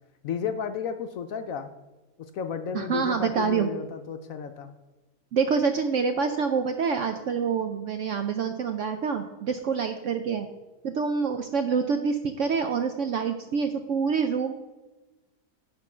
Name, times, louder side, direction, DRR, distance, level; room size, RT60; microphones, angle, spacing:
voice 1, 0.2-1.7 2.3-4.7, left 7 dB, 70° left, 8 dB, 0.9 m, -32 dB
voice 2, 2.7-3.7 5.3-10.5 10.8-14.5, right 6 dB, 70° right, 7 dB, 0.7 m, -26 dB
9.6 x 3.8 x 6.0 m, 1.1 s
omnidirectional pair, 1.7 m